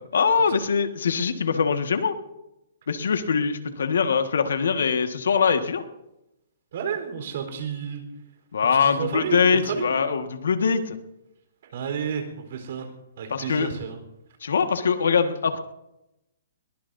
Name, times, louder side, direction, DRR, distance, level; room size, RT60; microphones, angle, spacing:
voice 1, 0.1-2.1 2.9-5.8 8.5-11.0 13.3-13.7 14.4-15.6, left 6 dB, 85° left, 7 dB, 1.7 m, -22 dB
voice 2, 6.7-8.0 8.8-9.9 11.6-12.9 13.2-14.0, right 7 dB, 55° right, 5 dB, 4.2 m, -31 dB
22.0 x 19.5 x 2.7 m, 0.90 s
hypercardioid pair, 160°, 0 cm